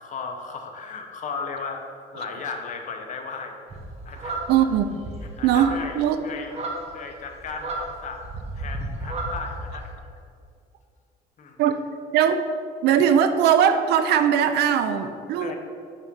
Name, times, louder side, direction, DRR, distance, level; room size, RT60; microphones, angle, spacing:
voice 1, 0.0-1.8 2.1-3.6 4.0-4.4 5.4-6.5 6.8-8.2 8.5-10.0 11.4-11.6 15.4-15.6, left 5 dB, 50° left, 4 dB, 0.8 m, -35 dB
sound 1, 3.7-9.8, right 2 dB, 40° right, 1.0 m, -33 dB
voice 2, 4.5-5.0 5.4-6.3 11.6-11.8 12.1-12.4 12.8-15.5, right 8 dB, 75° right, 9 dB, 0.4 m, -20 dB
5.5 x 3.5 x 5.4 m, 2.3 s
cardioid pair, 110°, 17 cm